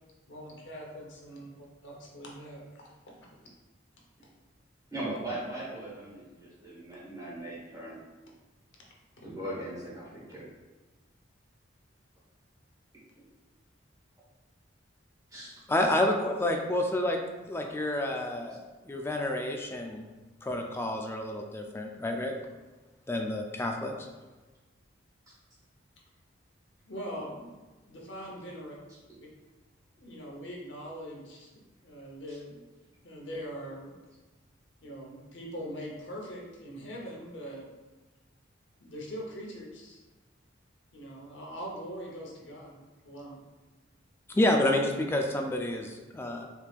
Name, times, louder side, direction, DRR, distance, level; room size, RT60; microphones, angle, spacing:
voice 1, 0.3-1.5 1.8-3.3 9.1-9.3 26.8-27.5 27.9-28.8 30.0-31.5 31.8-32.6 33.0-34.0 34.8-37.7 38.8-40.0 40.9-43.4, equal, 65° left, -2 dB, 0.9 m, -42 dB
voice 2, 4.9-8.0 9.2-10.5 15.3-15.6 18.5-18.6 32.3-32.4, right 1 dB, 20° right, -6 dB, 1.4 m, -39 dB
voice 3, 15.7-17.2 17.5-20.0 20.4-22.4 23.1-23.9 44.3-45.9 46.1-46.4, left 1 dB, 10° left, 3 dB, 0.3 m, -29 dB
4.4 x 3.5 x 2.4 m, 1.2 s
head